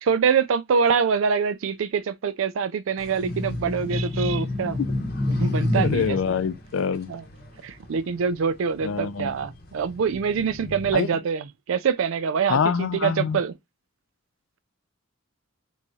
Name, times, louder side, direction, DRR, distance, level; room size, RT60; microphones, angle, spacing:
voice 1, 0.0-4.8 5.3-6.2 7.1-7.2 7.6-13.5, right 6 dB, 80° right, 0.4 m, -25 dB
sound 1, 3.0-8.5 9.1-10.9, left 1 dB, 50° left, 0.8 m, -29 dB
voice 2, 5.8-7.1 8.8-9.3 10.9-11.1 12.5-13.4, left 6 dB, 75° left, 0.4 m, -25 dB
3.5 x 3.1 x 2.6 m
head